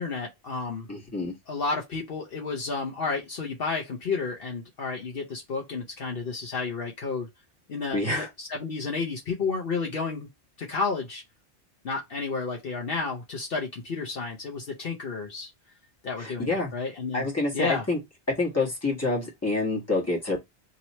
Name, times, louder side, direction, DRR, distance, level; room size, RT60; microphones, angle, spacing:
voice 1, 0.0-0.9 1.5-7.3 7.7-10.3 10.6-11.2 11.8-15.5 16.0-17.3 17.5-17.9, left 4 dB, 60° left, 0.9 m, -31 dB
voice 2, 0.9-1.3 7.9-8.3 16.2-16.7 17.1-18.0 18.4-20.4, left 2 dB, 15° left, 1.5 m, -27 dB
3.1 x 2.9 x 4.0 m
omnidirectional pair, 1.1 m